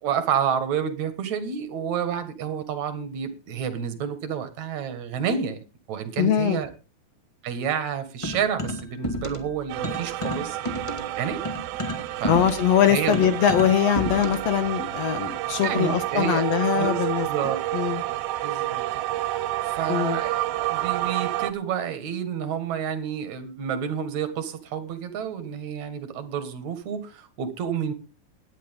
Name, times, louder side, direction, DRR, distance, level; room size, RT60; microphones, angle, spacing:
voice 1, 0.0-5.6 5.9-6.7 7.4-11.4 12.2-12.5 12.9-13.3 15.6-16.5 16.8-17.6 18.4-18.8 19.1-27.9, right 8 dB, 55° right, 10 dB, 2.6 m, -29 dB
voice 2, 6.2-6.6 12.3-17.3 17.7-18.0 19.9-20.2, left 9 dB, 70° left, 10 dB, 1.6 m, -22 dB
sound 1, 8.2-9.5 9.8-14.6, equal, 15° left, 1.0 m, -32 dB
sound 2, 9.7-21.5, right 15 dB, 80° right, 2.5 m, -29 dB
17.5 x 11.0 x 3.7 m, 0.32 s
omnidirectional pair, 4.3 m